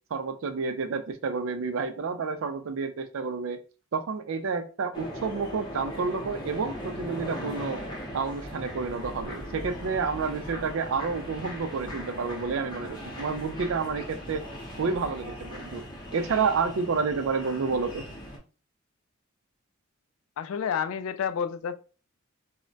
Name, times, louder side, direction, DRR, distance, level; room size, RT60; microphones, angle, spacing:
voice 1, 0.1-3.6 3.9-7.8 8.1-14.4 14.7-15.8 16.1-18.1, right 5 dB, 70° right, 0.4 m, -30 dB
sound 1, 4.9-18.4, equal, 20° left, 0.7 m, -39 dB
voice 2, 20.4-21.8, left 7 dB, 85° left, 0.3 m, -29 dB
2.2 x 2.1 x 3.8 m
head